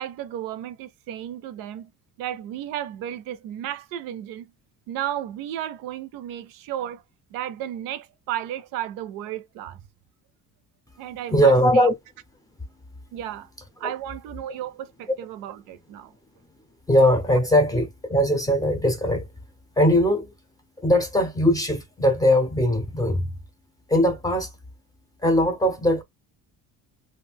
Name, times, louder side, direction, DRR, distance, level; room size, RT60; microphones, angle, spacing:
voice 1, 0.0-1.9 2.2-4.5 4.9-7.0 7.3-9.8 11.0-11.9 13.1-13.5 13.8-16.1, right 11 dB, 90° right, 0.5 m, -33 dB
voice 2, 11.3-11.9 13.8-13.9 16.9-19.3 19.8-20.3 20.8-23.3 23.9-24.5 25.2-26.0, equal, 10° left, 0.5 m, -20 dB
2.4 x 2.2 x 3.4 m
cardioid pair, 150°, 33 cm